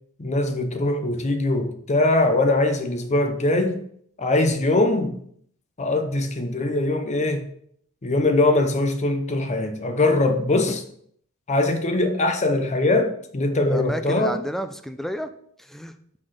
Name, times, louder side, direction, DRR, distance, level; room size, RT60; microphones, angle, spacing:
voice 1, 0.2-3.8 4.2-5.2 5.8-7.4 8.0-10.8 11.5-14.4, left 2 dB, 30° left, 0.7 m, -22 dB
voice 2, 13.7-15.3 15.6-15.9, equal, ahead, 0.4 m, -31 dB
5.9 x 4.3 x 4.7 m
head